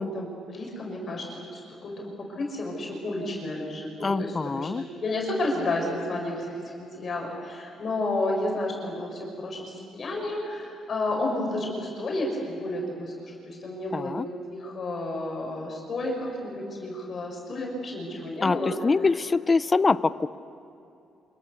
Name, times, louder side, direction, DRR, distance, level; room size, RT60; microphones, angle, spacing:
voice 1, 0.0-14.2 14.5-18.7, left 2 dB, 35° left, 0 dB, 6.4 m, -31 dB
voice 2, 4.0-4.9 13.9-14.3 18.4-20.3, left 4 dB, 20° left, 15 dB, 0.5 m, -24 dB
29.0 x 27.0 x 7.0 m, 2.7 s
cardioid pair, 145°, 0 cm